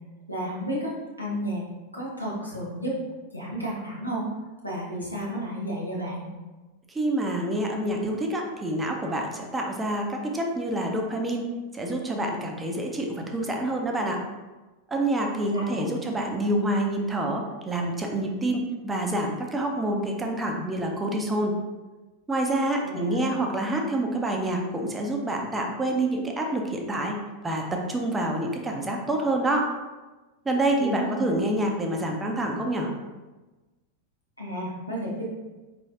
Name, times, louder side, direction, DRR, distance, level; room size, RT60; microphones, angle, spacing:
voice 1, 0.3-1.6 1.9-3.0 3.3-4.3 4.6-6.3 15.5-15.9 22.8-23.4 30.7-31.4 34.4-35.2, equal, 85° left, -4 dB, 1.0 m, -32 dB
voice 2, 6.9-11.5 11.7-14.2 14.9-21.6 22.3-27.2 27.4-29.7 30.5-32.9, right 1 dB, 15° right, 1 dB, 0.5 m, -27 dB
4.5 x 3.2 x 2.7 m, 1.2 s
figure-of-eight pair, 90°, 0 cm